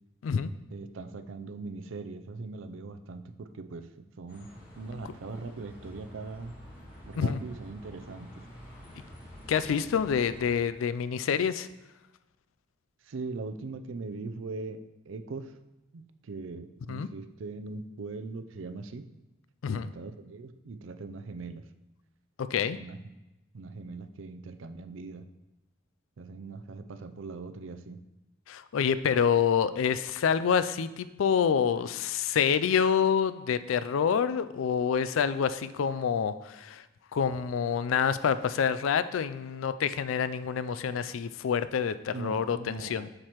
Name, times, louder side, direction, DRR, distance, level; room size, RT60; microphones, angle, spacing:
voice 1, 0.7-3.9 4.2-4.5 4.8-6.5 7.1-8.5 13.0-15.6 15.9-19.1 19.7-21.7 22.8-23.0 23.5-25.2 26.2-28.0 42.1-43.1, right 3 dB, 75° right, 11 dB, 0.5 m, -40 dB
Bus, 4.3-10.5, equal, 50° left, 2.0 m, -49 dB
voice 2, 9.5-11.7 16.9-17.1 19.6-19.9 22.5-22.8 28.5-36.8 37.1-43.1, left 7 dB, 90° left, 14 dB, 0.4 m, -27 dB
7.4 x 6.7 x 3.0 m, 0.98 s
head